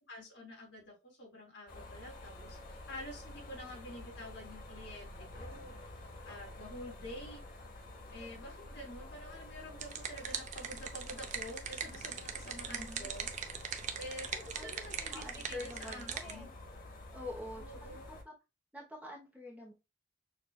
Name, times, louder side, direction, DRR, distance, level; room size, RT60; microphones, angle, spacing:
voice 1, 0.1-5.7 6.2-7.4 8.1-13.3 14.0-16.5 17.5-18.1, left 1 dB, 65° left, -1 dB, 2.2 m, -48 dB
sound 1, 1.7-18.2, left 1 dB, 45° left, 0.9 m, -49 dB
sound 2, 9.5-16.3, right 7 dB, 35° right, 0.5 m, -41 dB
voice 2, 12.7-13.1 14.5-14.7 15.1-16.5 17.1-18.0 18.2-18.3 18.7-19.7, left 1 dB, 5° right, -1 dB, 0.8 m, -46 dB
6.3 x 2.4 x 2.2 m, 0.27 s
head